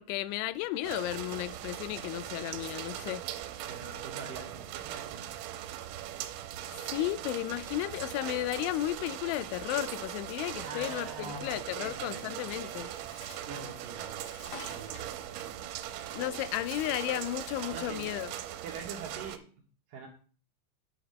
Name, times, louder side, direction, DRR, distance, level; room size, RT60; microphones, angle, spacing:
voice 1, 0.0-3.3 6.8-12.9 16.1-18.3, left 15 dB, 85° left, 2.9 m, -34 dB
sound 1, 0.8-19.4, right 12 dB, 85° right, 3.0 m, -40 dB
voice 2, 3.7-5.3 10.6-12.9 13.4-14.2 14.6-15.7 17.7-18.2 18.6-19.5 19.9-20.1, right 4 dB, 65° right, 2.3 m, -44 dB
Bird, 12.7-17.8, left 3 dB, 55° left, 1.7 m, -51 dB
9.0 x 5.0 x 6.4 m
omnidirectional pair, 5.3 m